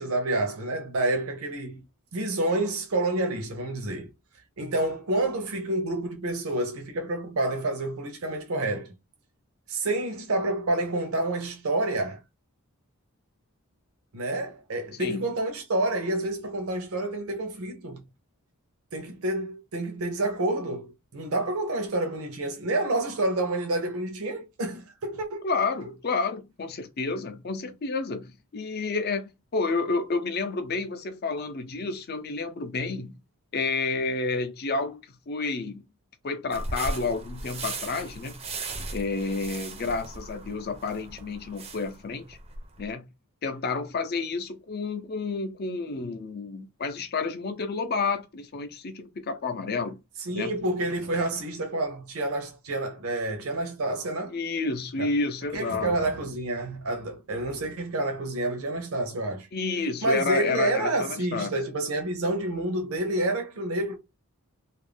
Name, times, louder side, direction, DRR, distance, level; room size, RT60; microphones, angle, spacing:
voice 1, 0.0-1.8 2.1-4.1 4.6-8.9 9.7-12.2 14.1-18.0 18.9-25.4 50.3-54.4 55.0-55.1 55.5-59.5 60.0-63.9, right 2 dB, 70° right, 0.7 m, -28 dB
voice 2, 15.0-15.3 25.4-33.1 33.5-35.8 36.2-38.4 38.9-42.4 42.8-43.1 43.4-50.0 50.3-50.6 54.3-55.9 59.5-61.5, left 4 dB, 45° left, 0.5 m, -30 dB
sound 1, 36.5-42.9, right 2 dB, 25° right, 0.5 m, -37 dB
2.5 x 2.1 x 3.2 m
head